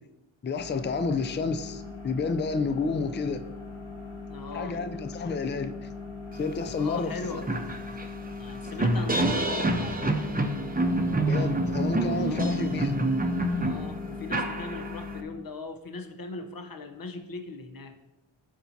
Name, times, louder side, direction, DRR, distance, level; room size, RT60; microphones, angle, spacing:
voice 1, 0.4-3.4 4.5-5.9 6.3-7.5 11.3-13.0, left 4 dB, 25° left, 10 dB, 0.4 m, -30 dB
sound 1, 0.6-15.2, left 4 dB, 65° left, 2.2 m, -40 dB
voice 2, 4.3-4.8 6.8-7.4 8.4-10.3 12.2-12.6 13.6-18.0, left 4 dB, 45° left, 6 dB, 0.9 m, -39 dB
sound 2, 6.7-6.8 7.1-15.2, right 1 dB, 20° right, 0.7 m, -27 dB
12.5 x 4.5 x 2.8 m, 0.95 s
wide cardioid pair, 70°, 48 cm